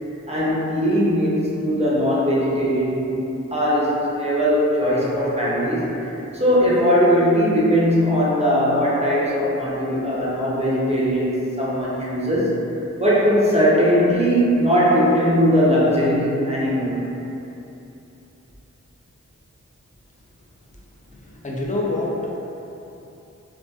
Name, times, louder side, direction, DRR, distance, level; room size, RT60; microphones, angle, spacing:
voice 1, 0.3-12.6 13.0-17.1, equal, 20° right, -7 dB, 0.5 m, -20 dB
voice 2, 21.1-22.3, left 2 dB, 25° left, -4 dB, 0.4 m, -27 dB
2.6 x 2.3 x 2.3 m, 2.9 s
wide cardioid pair, 55°, 30 cm